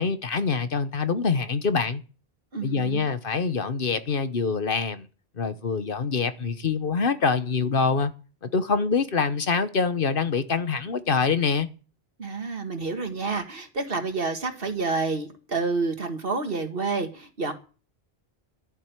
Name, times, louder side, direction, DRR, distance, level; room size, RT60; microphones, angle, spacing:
voice 1, 0.0-2.0 2.6-5.1 5.4-8.1 8.4-11.7, left 5 dB, 60° left, 1.2 m, -25 dB
voice 2, 2.5-3.1 12.2-17.5, right 3 dB, 60° right, 2.1 m, -29 dB
12.5 x 7.6 x 9.1 m
omnidirectional pair, 1.1 m